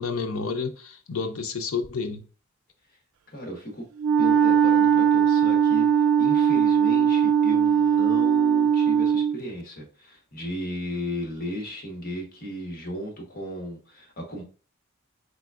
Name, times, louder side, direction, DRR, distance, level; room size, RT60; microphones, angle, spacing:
voice 1, 0.0-2.2, left 5 dB, 75° left, 0.5 m, -30 dB
voice 2, 3.3-3.9 4.2-14.4, equal, 45° left, 1.2 m, -35 dB
Wind instrument woodwind instrument, 4.0-9.4, right 8 dB, 85° right, 0.3 m, -20 dB
3.9 x 3.3 x 2.4 m
head